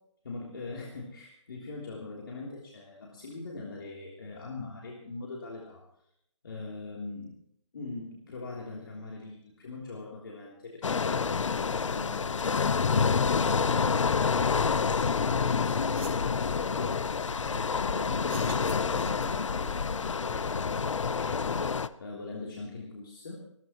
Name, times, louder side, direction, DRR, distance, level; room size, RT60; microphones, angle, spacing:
voice 1, 0.2-5.9 6.4-7.4 7.7-23.4, left 3 dB, 45° left, -2 dB, 3.3 m, -42 dB
sound 1, 10.8-21.9, left 5 dB, 75° left, 0.8 m, -28 dB
sound 2, 15.3-15.4 15.7-16.3 18.2-19.5, right 5 dB, 50° right, 4.7 m, -47 dB
26.5 x 14.5 x 3.0 m, 0.74 s
hypercardioid pair, 180°, 16 cm